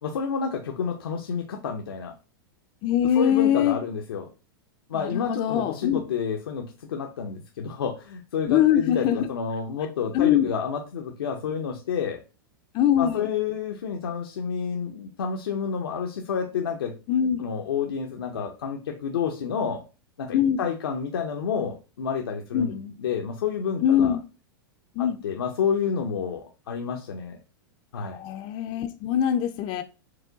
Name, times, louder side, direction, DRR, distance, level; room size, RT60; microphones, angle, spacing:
voice 1, 0.0-2.1 3.1-4.3 4.9-12.2 13.0-16.9 17.4-19.8 20.2-24.2 25.0-27.4 27.9-28.2, left 6 dB, 85° left, 0.6 m, -29 dB
voice 2, 2.8-3.8 4.9-6.0 8.5-9.3 10.1-10.5 12.7-13.3 17.1-17.5 20.3-20.6 22.5-22.8 23.8-24.2 25.0-25.2 28.1-29.8, left 10 dB, 45° left, 0.5 m, -23 dB
4.7 x 2.2 x 3.8 m
hypercardioid pair, 115°, 12 cm